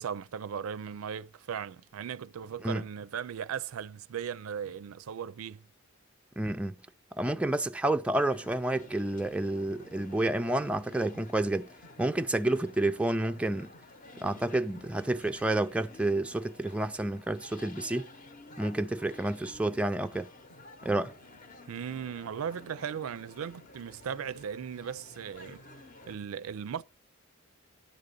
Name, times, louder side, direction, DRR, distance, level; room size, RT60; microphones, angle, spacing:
voice 1, 0.0-5.6 21.7-25.6 26.1-26.8, right 7 dB, 75° right, 0.4 m, -37 dB
voice 2, 6.4-6.7 7.2-11.7 12.0-13.7 14.2-18.1 18.6-20.3 20.8-21.1, right 1 dB, 5° right, 0.3 m, -29 dB
sound 1, 8.1-26.2, left 2 dB, 40° left, 0.8 m, -52 dB
10.5 x 3.8 x 6.7 m
head